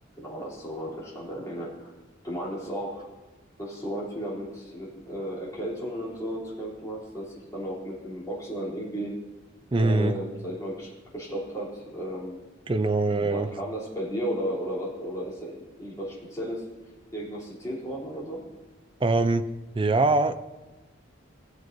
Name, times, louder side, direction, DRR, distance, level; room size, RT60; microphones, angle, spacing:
voice 1, 0.2-1.9 2.2-3.1 3.6-9.1 9.8-12.4 13.1-16.6 17.1-18.4, equal, 15° left, -7 dB, 3.2 m, -34 dB
voice 2, 9.7-10.1 12.7-13.5 19.0-19.5 19.7-20.4, right 2 dB, 25° right, 10 dB, 0.4 m, -23 dB
17.5 x 7.6 x 2.7 m, 1.2 s
head